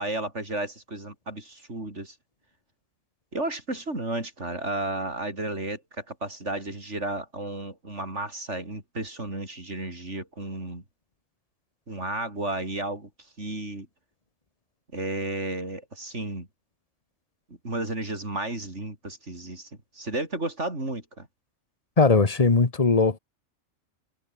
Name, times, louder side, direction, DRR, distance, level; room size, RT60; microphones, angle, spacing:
voice 1, 0.0-2.2 3.3-10.8 11.9-13.1 13.4-13.9 14.9-16.5 17.6-19.7 19.9-21.3, right 2 dB, 65° right, 5.8 m, -33 dB
voice 2, 22.0-23.2, left 4 dB, 30° left, 1.5 m, -19 dB
omnidirectional pair, 1.3 m